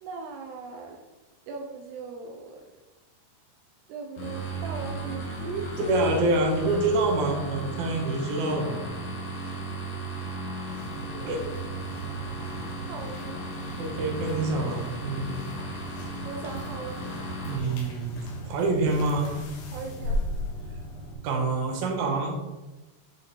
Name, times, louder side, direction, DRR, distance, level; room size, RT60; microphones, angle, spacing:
voice 1, 0.0-1.0 1.5-2.6 3.9-5.7 10.1-10.4 11.1-11.3 12.9-13.4 16.2-17.1 19.7-20.2, right 5 dB, 80° right, 1 dB, 2.9 m, -39 dB
sound 1, 4.2-17.6, right 2 dB, 35° left, 2.0 m, -36 dB
voice 2, 5.9-8.8 9.4-9.6 11.2-11.4 13.8-15.3 17.4-18.1 18.5-19.3 21.2-22.4, right 2 dB, 55° right, 0 dB, 2.6 m, -26 dB
sound 2, 10.7-21.1, equal, 60° left, 3.5 m, -37 dB
10.5 x 6.4 x 4.5 m, 1.1 s
omnidirectional pair, 4.9 m